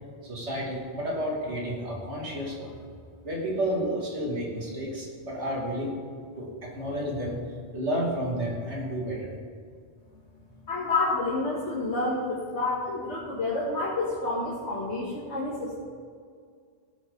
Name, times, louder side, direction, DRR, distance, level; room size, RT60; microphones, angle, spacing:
voice 1, 0.2-2.7 3.2-5.9 6.4-7.4 7.7-9.3, equal, 75° right, -3 dB, 2.8 m, -31 dB
voice 2, 10.7-15.7, left 2 dB, 75° left, -6 dB, 2.1 m, -29 dB
17.0 x 9.2 x 3.9 m, 2.1 s
omnidirectional pair, 1.2 m